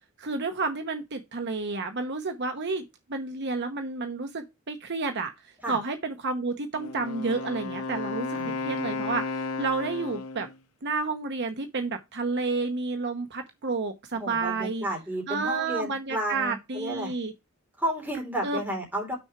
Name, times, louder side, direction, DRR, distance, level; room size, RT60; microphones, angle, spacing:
voice 1, 0.2-2.8 3.1-5.3 5.7-10.5 10.8-14.8 15.3-17.3 18.4-18.6, right 3 dB, 55° right, 1.0 m, -30 dB
Wind instrument woodwind instrument, 6.7-10.6, left 3 dB, 85° left, 0.8 m, -33 dB
voice 2, 8.3-9.0 14.1-17.1 17.8-19.2, right 1 dB, 10° right, 3.4 m, -32 dB
6.3 x 4.6 x 5.7 m
head